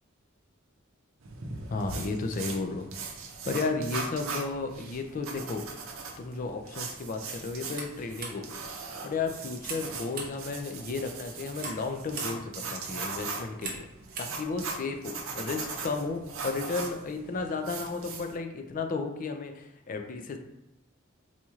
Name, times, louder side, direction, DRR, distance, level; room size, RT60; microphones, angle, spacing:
sound 1, 1.2-18.3, right 4 dB, 85° right, 0.6 m, -39 dB
voice 1, 1.7-2.9 3.4-5.6 6.2-8.6 9.0-13.9 14.2-20.4, left 3 dB, 40° left, 6 dB, 0.4 m, -33 dB
sound 2, 7.6-15.0, right 3 dB, 45° right, 0.7 m, -44 dB
4.1 x 3.0 x 2.4 m, 0.91 s
head